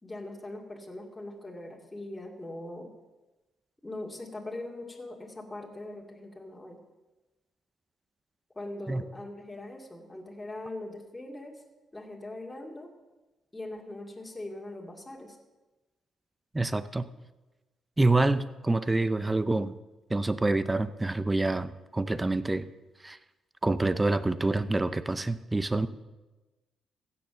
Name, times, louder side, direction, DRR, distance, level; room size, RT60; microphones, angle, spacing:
voice 1, 0.0-2.9 3.8-6.8 8.5-11.6 11.9-12.9 13.5-15.4, left 1 dB, 15° left, 1 dB, 2.4 m, -41 dB
voice 2, 16.5-17.1 18.0-19.7 20.1-22.7 23.0-23.2 23.6-25.9, right 2 dB, 15° right, 14 dB, 0.7 m, -27 dB
15.5 x 7.0 x 6.9 m, 1.1 s
cardioid pair, 90°, 0 cm